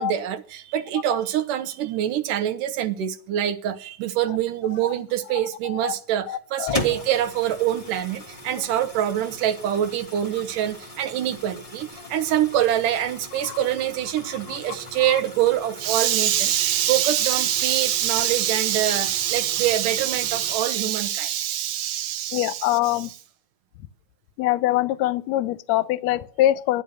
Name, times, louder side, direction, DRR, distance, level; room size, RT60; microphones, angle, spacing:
voice 1, 0.0-23.1, right 11 dB, 80° right, 2.5 m, -24 dB
voice 2, 5.6-5.9 6.3-6.8 12.2-12.3 13.4-13.6 14.5-15.2 22.3-23.1 24.4-26.8, left 14 dB, 75° left, 1.7 m, -24 dB
sound 1, 6.7-20.5, left 1 dB, 60° left, 0.3 m, -39 dB
13.5 x 9.9 x 6.2 m
omnidirectional pair, 3.8 m